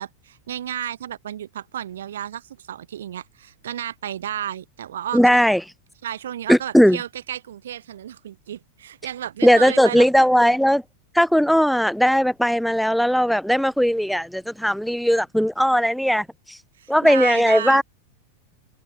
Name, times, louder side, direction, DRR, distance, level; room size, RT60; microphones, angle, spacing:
voice 1, 0.0-5.4 6.0-10.1 16.8-17.8, right 10 dB, 60° right, 0.5 m, -32 dB
voice 2, 5.1-5.6 6.5-7.0 9.4-10.8 11.1-16.6 16.9-17.8, equal, ahead, 0.4 m, -18 dB
figure-of-eight pair, 90°, 0 cm